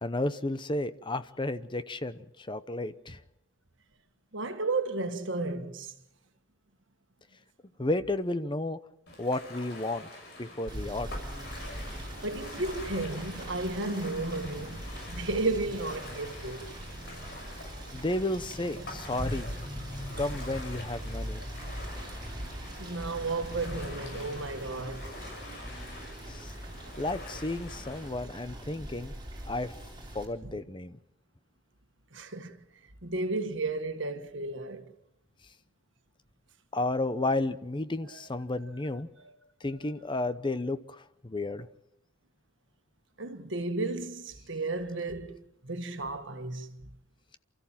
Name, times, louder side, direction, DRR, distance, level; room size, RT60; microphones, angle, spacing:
voice 1, 0.0-3.2 7.8-8.8 9.2-10.1 10.4-11.2 17.9-19.5 20.2-21.4 25.7-25.8 26.3-26.5 27.0-29.1 29.5-29.7 30.1-31.0 36.7-39.1 39.6-41.7, left 2 dB, 25° left, 0.8 m, -32 dB
voice 2, 4.3-5.9 12.2-16.7 22.8-25.2 32.1-32.5 33.0-34.9 39.8-39.9 43.2-46.8, right 3 dB, 60° right, 1.6 m, -33 dB
Ocean, 9.1-28.1, left 2 dB, 55° left, 6.5 m, -46 dB
Rain / Motor vehicle (road), 10.7-30.2, equal, 20° right, 4.3 m, -41 dB
28.5 x 14.0 x 7.4 m
head